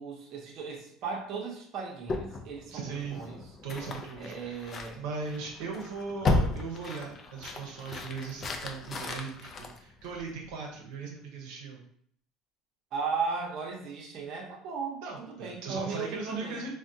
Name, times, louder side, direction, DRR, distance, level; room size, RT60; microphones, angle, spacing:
voice 1, 0.0-3.4 4.2-5.0 12.9-16.7, right 5 dB, 50° right, -1 dB, 0.7 m, -36 dB
sound 1, 2.1-10.5, left 3 dB, 35° left, 0.4 m, -35 dB
voice 2, 2.7-3.2 3.6-11.8 15.0-16.7, right 4 dB, 90° right, 0 dB, 0.7 m, -38 dB
3.4 x 2.1 x 2.6 m, 0.63 s
cardioid pair, 130°, 0 cm